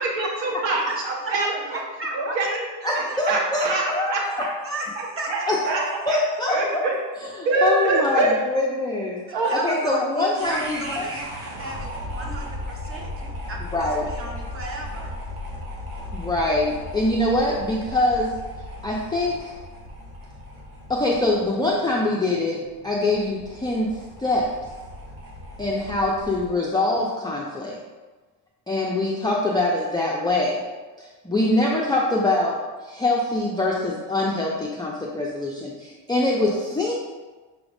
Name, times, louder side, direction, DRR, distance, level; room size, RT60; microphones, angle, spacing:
voice 1, 0.0-1.5 2.1-2.7 2.9-4.5 5.3-5.4 5.7-6.2 6.5-7.0 7.4-8.3 9.3-9.5, right 2 dB, 70° right, -1 dB, 1.0 m, -24 dB
voice 2, 1.7-2.4 2.8-3.2 4.6-5.6 9.3-11.3 11.6-15.1, right 1 dB, 30° right, 0 dB, 0.9 m, -35 dB
voice 3, 2.8-4.5 5.5-6.8 7.1-9.2 9.6-11.0 13.7-14.0 16.1-18.3 18.8-19.5 20.9-23.9 24.2-24.5 25.6-27.8 28.7-30.6 31.0-36.9, left 2 dB, 10° left, -4 dB, 0.4 m, -24 dB
sound 1, 10.3-26.5, left 1 dB, 85° right, 1.1 m, -37 dB
6.2 x 2.4 x 3.4 m, 1.3 s
cardioid pair, 115°, 45 cm